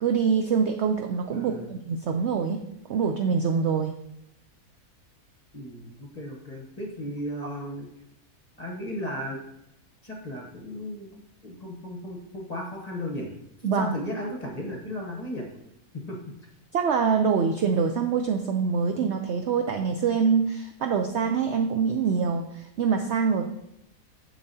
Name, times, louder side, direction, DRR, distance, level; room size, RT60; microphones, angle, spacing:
voice 1, 0.0-2.6 2.9-3.9 13.6-14.0 16.7-23.4, right 6 dB, 75° right, 5 dB, 0.6 m, -25 dB
voice 2, 1.3-1.7 5.5-7.9 8.6-9.4 10.0-13.3 13.7-15.5 16.1-16.2, equal, 30° left, 0 dB, 0.9 m, -35 dB
7.0 x 6.7 x 2.7 m, 0.81 s
omnidirectional pair, 1.7 m